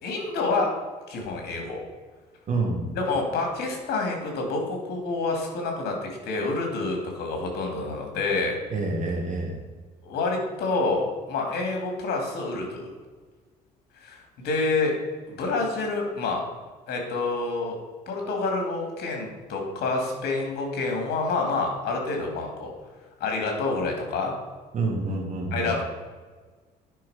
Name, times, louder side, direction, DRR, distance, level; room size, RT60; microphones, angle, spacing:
voice 1, 0.0-0.7 1.1-1.8 2.9-8.6 10.0-12.9 14.0-14.9 15.3-16.4 16.9-17.8 18.1-22.7 23.2-24.3 25.5-25.8, left 3 dB, 75° left, 1 dB, 2.8 m, -28 dB
voice 2, 2.5-3.0 8.7-9.6 24.7-25.7, right 3 dB, 45° right, 1 dB, 2.2 m, -28 dB
10.0 x 5.7 x 5.1 m, 1.4 s
cardioid pair, 110°, 17 cm